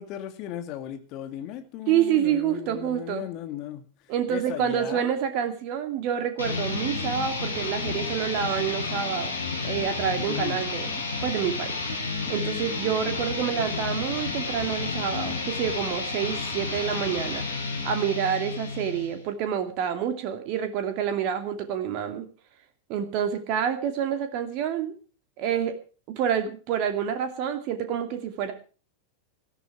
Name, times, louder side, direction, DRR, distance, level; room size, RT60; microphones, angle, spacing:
voice 1, 0.0-3.8 4.3-5.1 10.3-10.6, left 11 dB, 40° left, 8 dB, 2.5 m, -36 dB
voice 2, 1.9-3.3 4.1-9.3 9.6-10.9 11.2-11.8 12.3-17.4 17.8-22.3 22.9-24.9 25.4-25.7 26.2-28.5, right 9 dB, 45° right, 7 dB, 2.4 m, -28 dB
sound 1, 6.4-19.2, left 3 dB, 75° left, 7.5 m, -31 dB
19.0 x 13.5 x 4.7 m, 0.39 s
figure-of-eight pair, 90°, 0 cm